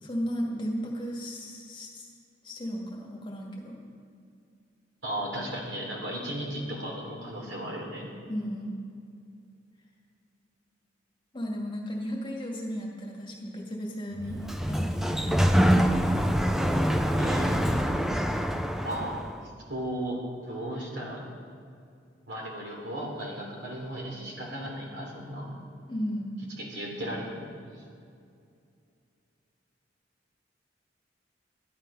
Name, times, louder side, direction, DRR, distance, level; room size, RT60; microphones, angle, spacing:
voice 1, 0.0-2.1 2.4-3.8 8.3-8.8 11.3-15.6 25.9-26.4, equal, 25° left, -2 dB, 2.1 m, -35 dB
voice 2, 5.0-8.0 17.2-17.8 18.8-19.2 19.7-20.2 20.5-21.2 22.3-25.5 26.6-27.5, right 1 dB, 70° right, -2 dB, 3.4 m, -35 dB
Sliding door, 14.2-19.3, equal, ahead, 0.4 m, -25 dB
13.5 x 11.5 x 5.6 m, 2.4 s
head